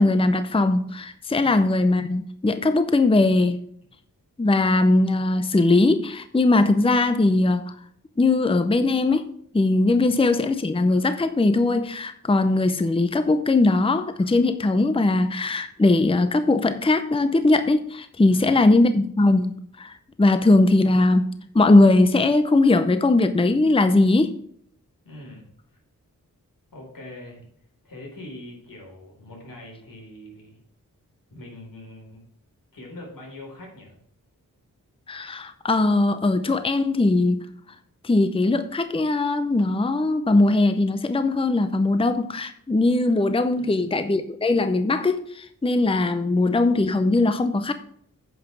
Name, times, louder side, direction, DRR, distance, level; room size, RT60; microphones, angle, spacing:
voice 1, 0.0-3.6 4.4-7.7 8.2-9.3 9.5-24.3 35.1-37.5 38.0-47.7, left 2 dB, 15° left, 0.6 m, -20 dB
voice 2, 18.3-18.8 25.0-25.8 26.7-27.5 27.8-30.6 31.3-32.2 32.7-34.0 43.5-43.8, left 1 dB, 85° left, 4.2 m, -43 dB
9.1 x 5.7 x 6.1 m
wide cardioid pair, 95°, 33 cm